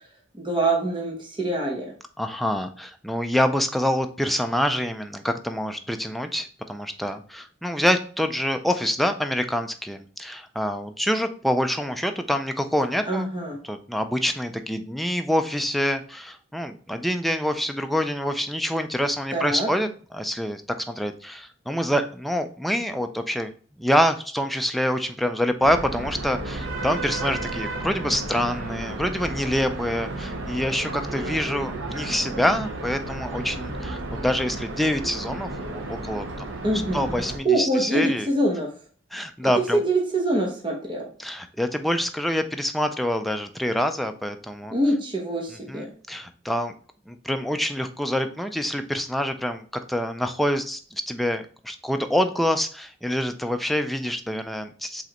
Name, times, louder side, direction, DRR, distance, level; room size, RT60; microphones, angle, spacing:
voice 1, 0.3-1.9 13.0-13.6 19.3-19.7 36.6-37.0 37.4-38.7 39.4-41.1 44.7-45.9, right 2 dB, 25° right, -1 dB, 0.9 m, -24 dB
voice 2, 2.2-13.3 13.6-23.5 23.8-36.5 36.7-38.3 39.1-39.8 41.2-44.7 45.7-46.7 47.1-55.0, equal, ahead, 6 dB, 0.3 m, -26 dB
sound 1, 25.6-37.4, right 2 dB, 75° right, 0.8 m, -33 dB
4.9 x 3.2 x 2.9 m, 0.42 s
head